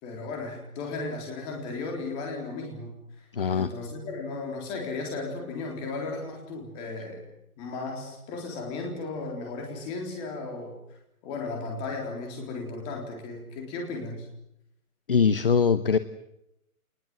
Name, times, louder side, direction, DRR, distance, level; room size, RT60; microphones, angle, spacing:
voice 1, 0.0-3.0 3.5-7.2 7.6-10.8 11.2-14.3, left 3 dB, 15° left, 1 dB, 3.9 m, -35 dB
voice 2, 3.3-3.7 15.1-16.0, left 6 dB, 40° left, 13 dB, 0.9 m, -22 dB
26.5 x 20.5 x 7.7 m, 0.82 s
hypercardioid pair, 175°, 43 cm